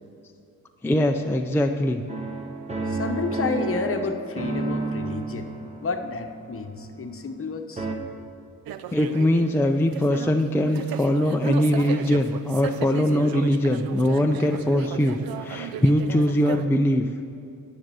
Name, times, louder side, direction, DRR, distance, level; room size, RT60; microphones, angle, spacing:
voice 1, 0.8-2.0 8.9-17.0, left 1 dB, 5° left, 4 dB, 0.5 m, -22 dB
sound 1, 2.1-7.4 7.8-8.0, right 3 dB, 20° right, 1.1 m, -32 dB
voice 2, 2.9-5.5 5.8-7.9, left 4 dB, 35° left, 6 dB, 1.0 m, -30 dB
sound 2, 8.7-16.6, right 9 dB, 75° right, 0.6 m, -35 dB
10.5 x 6.6 x 6.9 m, 2.6 s
cardioid pair, 100°, 36 cm